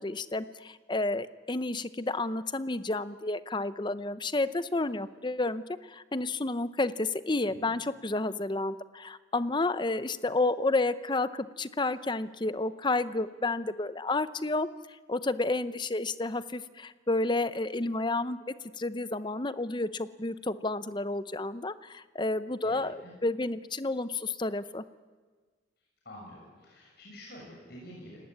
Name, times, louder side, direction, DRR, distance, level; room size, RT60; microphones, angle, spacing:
voice 1, 0.0-14.7 15.1-24.8, left 2 dB, 25° left, 14 dB, 0.7 m, -31 dB
voice 2, 22.6-23.1 26.0-28.2, equal, 55° left, -3 dB, 6.9 m, -47 dB
29.5 x 18.5 x 9.7 m, 1.4 s
head